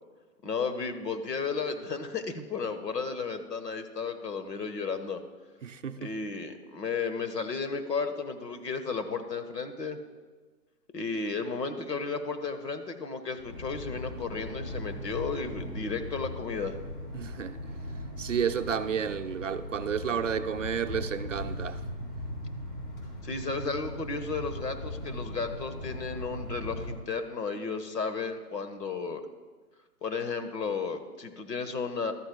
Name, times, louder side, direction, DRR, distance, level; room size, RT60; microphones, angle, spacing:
voice 1, 0.4-5.2 6.0-10.0 10.9-16.8 23.2-29.2 30.0-32.1, left 4 dB, 85° left, 1.4 m, -33 dB
voice 2, 5.6-6.1 17.1-17.6 18.2-21.8, right 7 dB, 55° right, 0.5 m, -31 dB
sound 1, 13.4-26.9, left 1 dB, 35° left, 2.9 m, -39 dB
12.5 x 12.5 x 2.3 m
hypercardioid pair, 155°, 48 cm